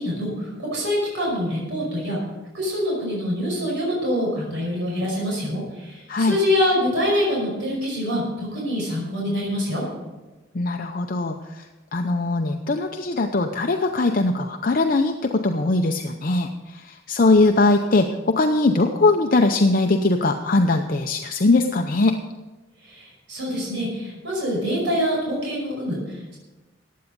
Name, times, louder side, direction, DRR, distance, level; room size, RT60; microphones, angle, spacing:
voice 1, 0.0-2.2 2.5-9.8 22.8-26.4, left 1 dB, 70° right, -3 dB, 5.4 m, -25 dB
voice 2, 10.5-11.7 11.9-22.1, left 2 dB, 45° left, 4 dB, 0.7 m, -21 dB
15.0 x 9.6 x 5.3 m, 1.2 s
head